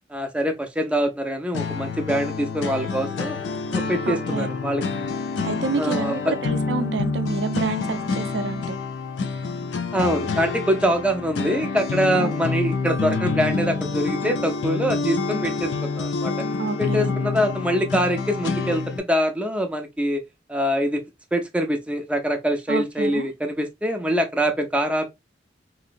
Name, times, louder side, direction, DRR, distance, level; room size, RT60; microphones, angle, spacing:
voice 1, 0.1-3.4 3.7-4.8 5.8-6.3 9.9-16.3 16.8-20.2 20.5-21.0 21.3-25.1, equal, 5° right, 0.5 m, -24 dB
sound 1, 1.5-19.0, left 4 dB, 75° left, 0.4 m, -27 dB
voice 2, 4.1-4.5 5.5-8.8 12.1-12.5 16.6-17.1 22.7-23.3, right 4 dB, 65° right, 0.4 m, -28 dB
3.0 x 2.6 x 2.4 m
head